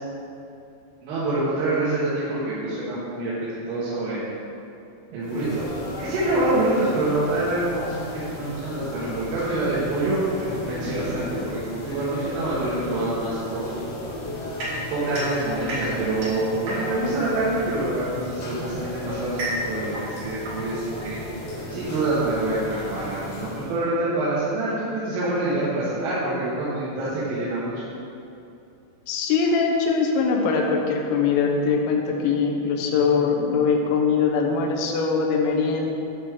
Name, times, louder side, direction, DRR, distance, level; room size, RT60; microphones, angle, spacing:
voice 1, 1.0-3.3 3.7-4.3 5.1-5.7 6.0-13.7 14.9-21.2 21.7-27.7, right 2 dB, 80° right, -11 dB, 4.1 m, -26 dB
sound 1, 5.2-23.8, left 1 dB, 60° left, 3.5 m, -35 dB
sound 2, 14.6-17.2 18.2-21.6, right 1 dB, 65° right, 1.8 m, -34 dB
voice 2, 29.1-35.9, left 5 dB, 75° left, 1 dB, 2.9 m, -22 dB
10.5 x 6.3 x 3.7 m, 2.7 s
omnidirectional pair, 5.7 m